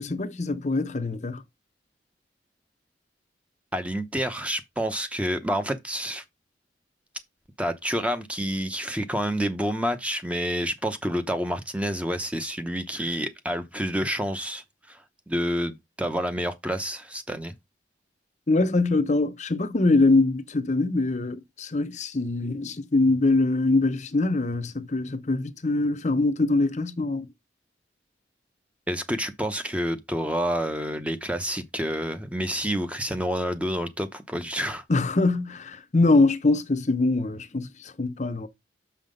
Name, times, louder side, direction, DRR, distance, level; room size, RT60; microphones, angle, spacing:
voice 1, 0.0-1.4 18.5-27.3 34.9-38.5, left 2 dB, 40° left, 0.7 m, -23 dB
voice 2, 3.7-6.2 7.6-15.0 15.3-17.5 28.9-34.8, equal, 5° right, 0.9 m, -28 dB
6.4 x 5.7 x 5.2 m
head